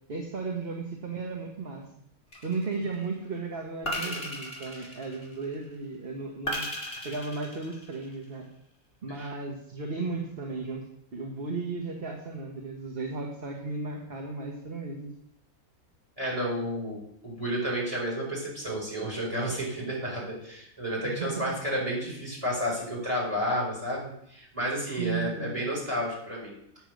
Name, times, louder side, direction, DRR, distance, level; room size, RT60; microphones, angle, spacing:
voice 1, 0.1-1.8 2.4-6.7 7.0-8.5 9.0-10.9 11.1-15.1 21.0-21.5 25.0-25.5, right 4 dB, 45° right, 1 dB, 1.4 m, -35 dB
sound 1, 2.3-2.9 3.9-5.5 6.5-8.2, equal, 40° left, 2.7 m, -35 dB
voice 2, 16.2-26.6, equal, 20° right, -5 dB, 4.8 m, -31 dB
8.7 x 7.1 x 6.3 m, 0.73 s
omnidirectional pair, 1.5 m